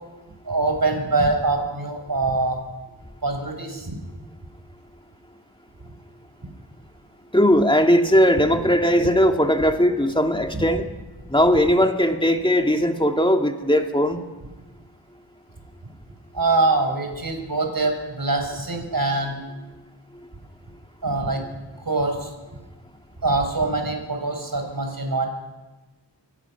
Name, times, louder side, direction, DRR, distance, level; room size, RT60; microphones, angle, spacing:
voice 1, 0.4-2.6 3.2-4.0 10.5-10.6 16.3-19.4 21.0-21.4 21.8-22.3 23.2-25.3, right 3 dB, 50° right, 4 dB, 5.1 m, -24 dB
voice 2, 7.3-10.9 11.3-14.2, equal, 10° left, 4 dB, 2.3 m, -19 dB
24.0 x 19.5 x 6.1 m, 1.2 s
cardioid pair, 45°, 44 cm